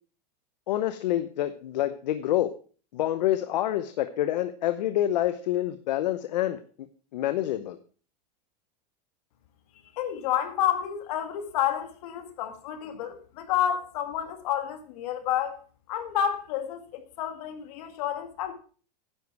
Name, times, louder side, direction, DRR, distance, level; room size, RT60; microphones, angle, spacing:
voice 1, 0.7-2.5 2.9-6.9 7.1-7.8, left 13 dB, 80° left, 0.8 m, -27 dB
voice 2, 10.0-15.6 15.9-18.5, left 10 dB, 60° left, 2.0 m, -30 dB
10.5 x 8.2 x 4.6 m
supercardioid pair, 155°, 21 cm